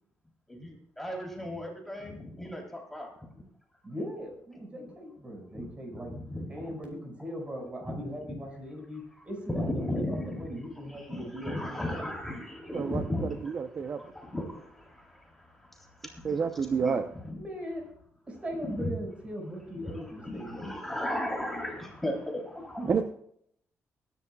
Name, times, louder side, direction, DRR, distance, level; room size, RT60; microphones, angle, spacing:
voice 1, 0.5-3.3 4.9-5.0 5.5-6.7 7.9-8.4 9.5-10.5 10.9-16.3 16.8-17.0 17.2-17.4 18.7-18.9 19.7-22.8, left 1 dB, 5° left, -1 dB, 3.5 m, -36 dB
voice 2, 3.8-6.1 6.5-12.0 17.4-17.8 18.3-20.7 22.8-22.9, equal, 25° right, 1 dB, 5.6 m, -39 dB
voice 3, 12.7-13.0 13.4-14.0 16.2-17.0 22.9-23.0, right 6 dB, 40° right, 7 dB, 0.8 m, -28 dB
23.5 x 11.0 x 2.4 m, 0.68 s
cardioid pair, 145°, 5 cm